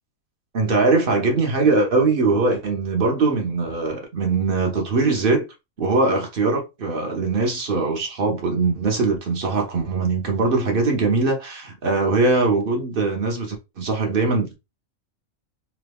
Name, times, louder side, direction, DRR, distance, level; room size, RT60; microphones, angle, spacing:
voice 1, 0.5-5.4 5.8-14.6, right 3 dB, 50° right, 0.8 m, -21 dB
3.0 x 2.2 x 3.3 m
omnidirectional pair, 1.5 m